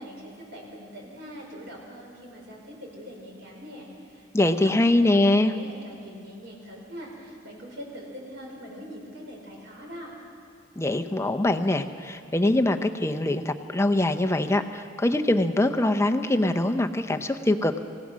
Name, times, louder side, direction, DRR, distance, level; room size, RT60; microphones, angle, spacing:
voice 1, 0.0-10.1, equal, 60° right, -1 dB, 5.3 m, -42 dB
voice 2, 4.3-5.5 10.8-17.8, left 1 dB, 15° left, 7 dB, 0.7 m, -23 dB
26.5 x 16.5 x 6.3 m, 2.4 s
head